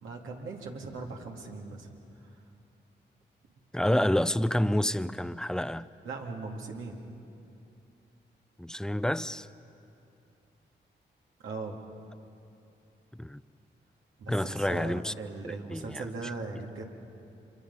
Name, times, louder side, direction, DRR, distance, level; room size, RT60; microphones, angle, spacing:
voice 1, 0.0-1.9 2.2-2.4 6.0-7.0 11.4-11.8 14.2-16.8, right 3 dB, 85° right, 2.3 m, -39 dB
voice 2, 3.7-5.9 8.6-9.5 13.1-13.4 14.3-15.1 15.4-16.0, left 1 dB, 5° left, 0.6 m, -28 dB
26.5 x 23.5 x 5.5 m
supercardioid pair, 45°, 20 cm